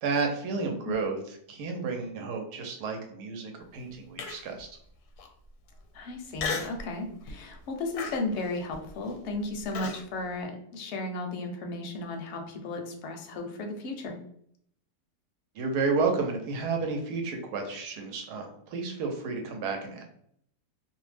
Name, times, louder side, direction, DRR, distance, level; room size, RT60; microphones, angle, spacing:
voice 1, 0.0-1.2 1.5-4.7 15.5-20.0, right 4 dB, 90° right, 3 dB, 1.2 m, -31 dB
Human voice, 4.2-4.6 5.2-5.3 6.4-6.8 7.3-7.5 8.0-10.0, left 5 dB, 80° left, 1.1 m, -35 dB
voice 2, 5.9-14.1, left 2 dB, 65° left, 3 dB, 0.7 m, -35 dB
2.7 x 2.0 x 3.2 m, 0.68 s
omnidirectional pair, 1.6 m